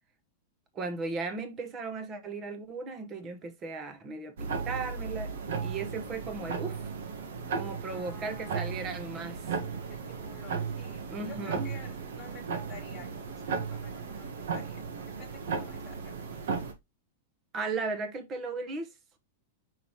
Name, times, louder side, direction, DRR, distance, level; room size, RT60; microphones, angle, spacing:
voice 1, 0.7-5.3 5.6-6.9 7.6-9.5 11.1-11.7 17.5-18.9, right 4 dB, 20° right, 1.1 m, -36 dB
sound 1, 4.4-16.7, right 5 dB, 90° right, 1.8 m, -36 dB
voice 2, 7.9-8.9 9.9-16.2, left 4 dB, 5° left, 1.7 m, -51 dB
5.6 x 5.6 x 3.2 m
supercardioid pair, 175°, 0 cm